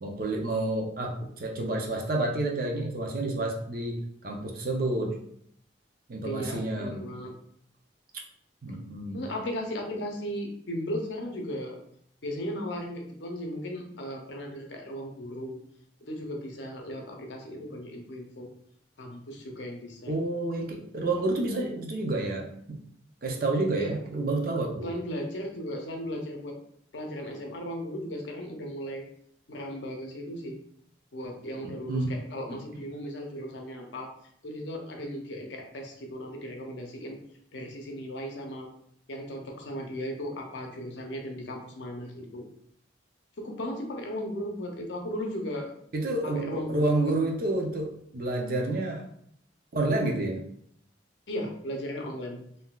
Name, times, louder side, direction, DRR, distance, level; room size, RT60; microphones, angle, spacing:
voice 1, 0.0-5.2 6.1-7.1 8.6-9.3 20.1-22.8 23.2-24.9 31.6-32.1 32.5-32.6 45.9-49.0 49.7-50.4, right 2 dB, 50° right, 1 dB, 0.5 m, -29 dB
voice 2, 6.2-7.3 9.1-11.8 12.2-15.6 16.0-18.5 19.0-20.2 23.8-23.9 24.8-26.6 26.9-29.0 29.5-30.6 31.1-34.1 34.4-37.2 37.5-38.7 39.1-42.5 43.4-45.7 46.2-47.1 51.3-52.4, equal, 70° left, 2 dB, 0.7 m, -36 dB
3.7 x 2.6 x 2.3 m, 0.68 s
head